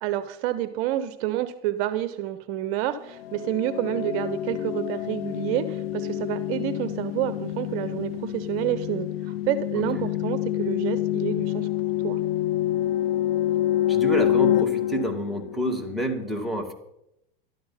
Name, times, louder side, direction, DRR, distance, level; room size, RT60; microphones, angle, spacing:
voice 1, 0.0-11.7 12.0-12.2, right 13 dB, 50° right, 13 dB, 0.8 m, -29 dB
sound 1, 3.2-15.9, left 13 dB, 80° left, 0.7 m, -27 dB
voice 2, 13.9-16.7, right 1 dB, ahead, 0 dB, 2.3 m, -28 dB
13.0 x 11.5 x 5.7 m, 0.81 s
hypercardioid pair, 115°, 29 cm